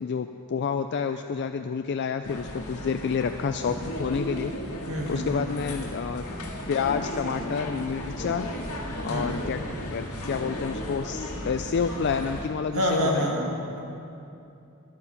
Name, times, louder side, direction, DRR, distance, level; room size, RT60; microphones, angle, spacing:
voice 1, 0.0-4.5 5.1-6.3 6.7-8.5 9.0-9.6 9.9-13.3, left 6 dB, 50° left, 7 dB, 0.4 m, -29 dB
sound 1, 2.2-12.5, left 1 dB, 80° left, 1.8 m, -35 dB
voice 2, 4.9-5.4 9.1-9.4 12.7-13.8, equal, 70° right, -1 dB, 1.9 m, -27 dB
11.0 x 9.6 x 6.9 m, 2.7 s
head